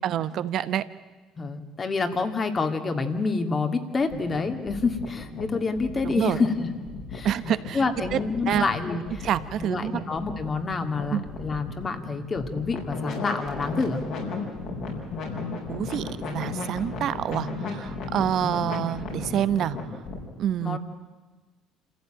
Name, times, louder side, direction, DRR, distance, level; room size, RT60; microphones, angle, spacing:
voice 1, 0.0-0.8 6.1-6.4 7.2-7.8 8.1-8.2 8.5-8.6 9.2-10.0 11.1-11.3 15.7-19.8 20.4-20.8, right 10 dB, 60° right, 14 dB, 1.0 m, -27 dB
voice 2, 1.4-6.7 7.1-7.3 7.7-9.3 9.6-14.0 20.6-20.8, left 4 dB, 35° left, 7 dB, 2.4 m, -27 dB
sound 1, 4.0-20.2, left 3 dB, 70° left, 6.0 m, -35 dB
27.0 x 15.0 x 9.1 m, 1.3 s
supercardioid pair, 80°, 0 cm